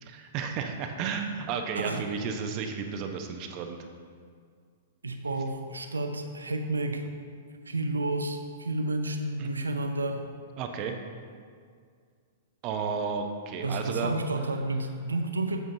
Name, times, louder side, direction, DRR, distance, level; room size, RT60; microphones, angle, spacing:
voice 1, 0.0-3.8 9.4-9.5 10.6-10.9 12.6-14.1, right 6 dB, 40° right, 5 dB, 0.8 m, -33 dB
voice 2, 5.0-7.1 7.6-10.3 13.6-15.6, right 2 dB, 85° right, 6 dB, 0.6 m, -31 dB
9.0 x 7.5 x 2.7 m, 2.1 s
figure-of-eight pair, 105°, 0 cm